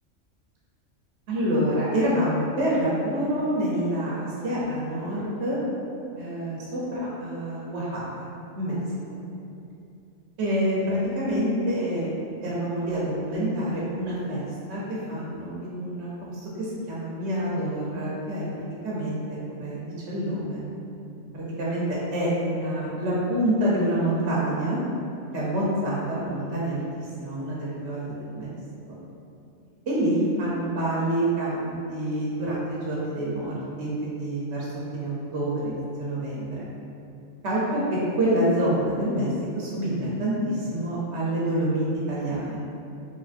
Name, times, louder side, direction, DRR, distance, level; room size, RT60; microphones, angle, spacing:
voice 1, 1.3-5.6 6.2-8.1 8.6-8.8 9.1-9.2 10.4-12.1 12.4-14.8 15.1-18.4 18.8-20.6 21.3-24.8 25.3-28.6 29.9-34.6 34.9-36.7 37.4-39.3 39.5-42.6, right 1 dB, 70° right, -6 dB, 0.8 m, -27 dB
3.1 x 2.4 x 2.4 m, 2.6 s
omnidirectional pair, 1.3 m